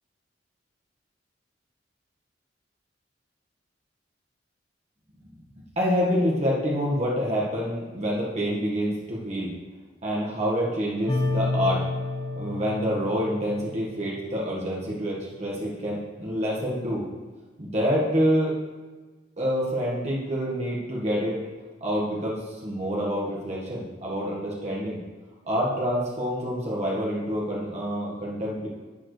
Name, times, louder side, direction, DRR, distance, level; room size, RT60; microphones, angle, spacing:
voice 1, 5.7-9.5 10.0-11.8 12.4-17.1 17.6-18.5 19.4-21.4 21.8-25.0 25.5-28.7, equal, 40° right, -5 dB, 1.6 m, -27 dB
sound 1, 11.1-14.5, left 2 dB, 30° left, 1.1 m, -30 dB
11.0 x 8.8 x 3.3 m, 1.3 s
head